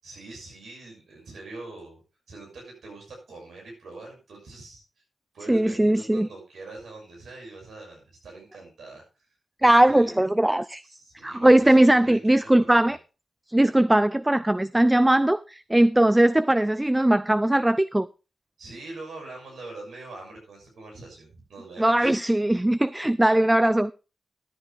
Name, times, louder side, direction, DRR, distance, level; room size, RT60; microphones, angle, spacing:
voice 1, 0.0-2.0 2.3-4.8 5.3-9.0 9.6-10.2 10.8-13.0 18.6-22.1, right 2 dB, 80° right, 6.2 m, -43 dB
voice 2, 5.5-6.3 9.6-10.8 11.2-13.0 13.5-18.1 21.8-23.9, right 1 dB, 15° right, 0.5 m, -20 dB
13.0 x 9.4 x 3.4 m
cardioid pair, 45°, 0 cm